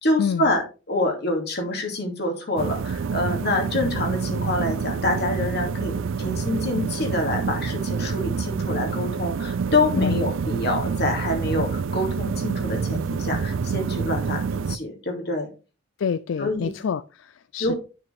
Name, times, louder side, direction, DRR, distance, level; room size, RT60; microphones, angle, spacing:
voice 1, 0.0-15.5 16.4-16.7 17.6-17.8, left 2 dB, 55° left, 2 dB, 2.6 m, -26 dB
sound 1, 2.6-14.8, right 5 dB, 85° right, 0.4 m, -27 dB
voice 2, 10.0-10.3 16.0-17.8, left 6 dB, 80° left, 15 dB, 0.4 m, -27 dB
9.2 x 6.5 x 3.5 m, 0.33 s
head